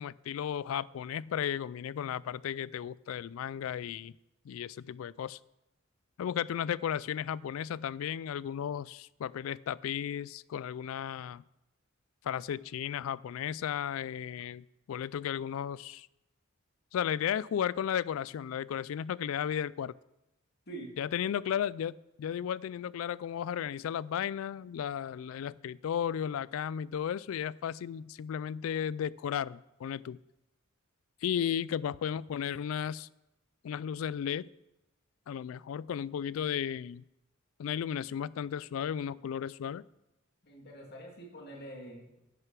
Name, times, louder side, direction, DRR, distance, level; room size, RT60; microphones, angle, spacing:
voice 1, 0.0-4.1 4.5-5.4 6.2-11.4 12.2-16.1 16.9-19.9 21.0-30.2 31.2-33.1 33.6-34.5 35.3-37.0 37.6-39.8, left 9 dB, 80° left, 22 dB, 0.3 m, -34 dB
voice 2, 40.4-42.2, right 1 dB, 55° left, 0 dB, 2.1 m, -45 dB
10.5 x 6.5 x 6.0 m, 0.93 s
head